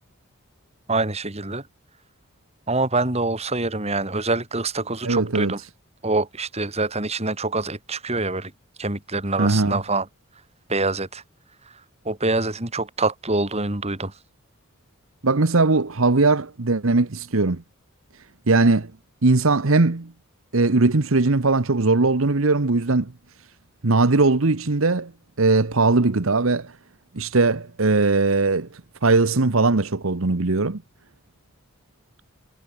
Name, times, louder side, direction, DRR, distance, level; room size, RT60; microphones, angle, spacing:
voice 1, 0.9-1.6 2.7-5.6 6.0-8.5 8.8-10.0 10.7-11.2 12.0-14.1, right 2 dB, 30° right, 3.3 m, -25 dB
voice 2, 5.0-5.7 9.4-9.8 15.2-17.6 18.5-18.9 19.2-20.1 20.5-23.1 23.8-25.1 25.4-26.7 27.1-30.8, right 3 dB, 65° right, 1.1 m, -20 dB
head